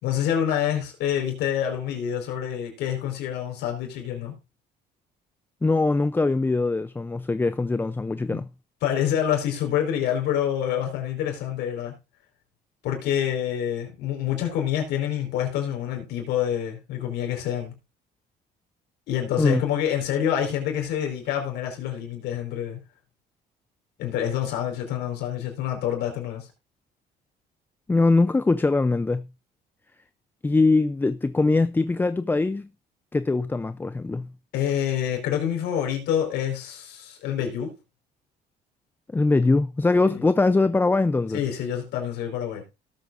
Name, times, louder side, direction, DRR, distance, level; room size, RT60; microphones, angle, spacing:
voice 1, 0.0-4.3 8.3-8.4 8.8-11.9 12.8-17.7 19.1-22.8 24.0-26.5 34.5-37.7 40.1-40.2 41.3-42.6, left 10 dB, 85° left, 4.5 m, -27 dB
voice 2, 5.6-8.5 19.4-19.6 27.9-29.3 30.4-32.7 33.1-34.3 39.1-41.4, left 3 dB, 10° left, 0.4 m, -22 dB
18.0 x 8.0 x 2.5 m
cardioid pair, 110°, 17 cm